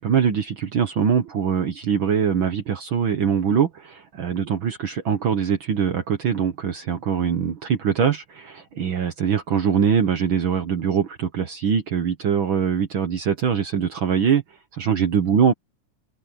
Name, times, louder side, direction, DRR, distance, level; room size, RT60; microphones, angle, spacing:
voice 1, 0.0-14.4 14.7-15.5, right 7 dB, 55° right, 1.5 m, -22 dB
open air
omnidirectional pair, 3.5 m